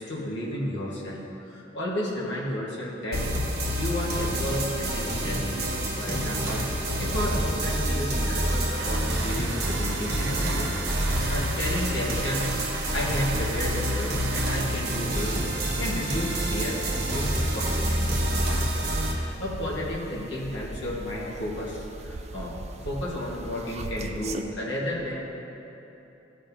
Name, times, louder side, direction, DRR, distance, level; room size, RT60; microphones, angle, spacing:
voice 1, 0.0-3.3 3.5-12.5 12.7-18.1 18.9-22.6 22.8-25.2, left 1 dB, 70° left, -5 dB, 1.4 m, -32 dB
sound 1, 3.1-19.1, right 1 dB, 55° right, 1.3 m, -27 dB
sound 2, 8.8-14.6, right 4 dB, 75° right, 0.6 m, -40 dB
sound 3, 12.0-24.4, right 2 dB, 35° right, 0.4 m, -41 dB
14.5 x 5.2 x 2.7 m, 3.0 s
head